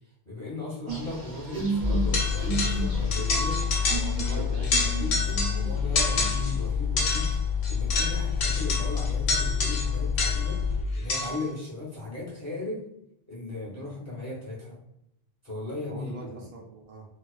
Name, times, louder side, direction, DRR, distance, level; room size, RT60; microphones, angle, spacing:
voice 1, 0.2-3.6 4.3-4.4 4.9-7.4 7.7-10.6 10.9-12.8 13.3-14.8 15.4-16.5, left 2 dB, 20° left, -6 dB, 0.6 m, -37 dB
sound 1, 0.9-5.7 6.1-6.5, right 4 dB, 85° right, 1.0 m, -34 dB
sound 2, 1.8-10.8, left 6 dB, 30° right, 0.5 m, -28 dB
sound 3, 2.1-2.9 3.1-4.4 4.6-5.6 6.0-6.6 7.0-10.6 11.1-11.5, left 3 dB, 65° left, 0.7 m, -29 dB
voice 2, 3.8-5.2 15.9-17.1, right 3 dB, 65° right, -2 dB, 0.7 m, -41 dB
2.4 x 2.2 x 2.3 m, 0.82 s
omnidirectional pair, 1.1 m